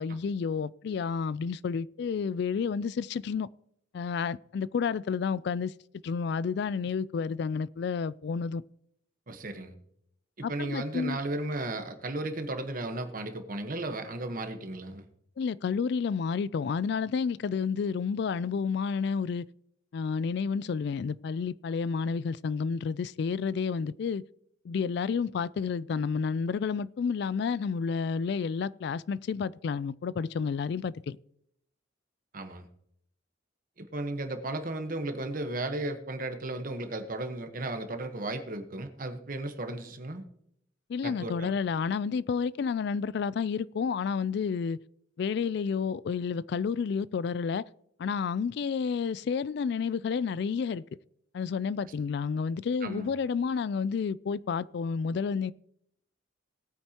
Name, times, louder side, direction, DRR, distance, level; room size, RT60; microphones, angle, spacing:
voice 1, 0.0-3.5 3.9-5.7 6.0-8.6 10.4-11.2 15.4-19.5 19.9-24.2 24.6-31.2 40.9-44.8 45.2-47.7 48.0-50.8 51.3-55.5, left 5 dB, 60° left, 0.3 m, -30 dB
voice 2, 9.3-9.7 10.4-15.0 32.3-32.7 33.8-40.2 41.0-41.5 52.8-53.1, right 2 dB, 45° right, 1.2 m, -35 dB
19.0 x 8.9 x 2.9 m
head